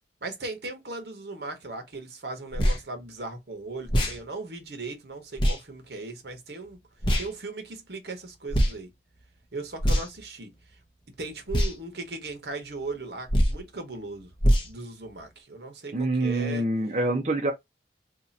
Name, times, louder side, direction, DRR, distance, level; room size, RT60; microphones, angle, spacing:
voice 1, 0.2-6.8 7.2-8.9 9.5-10.5 11.2-14.3 14.6-16.6, right 3 dB, 65° right, 1.0 m, -38 dB
sound 1, 2.5-2.8 3.9-4.2 5.4-5.6 7.0-7.3 8.5-8.7 9.8-10.2 11.5-11.7 13.3-13.6 14.4-14.7, equal, 30° left, 0.7 m, -22 dB
voice 2, 15.9-17.5, right 2 dB, 40° right, 0.6 m, -26 dB
2.8 x 2.4 x 4.0 m
head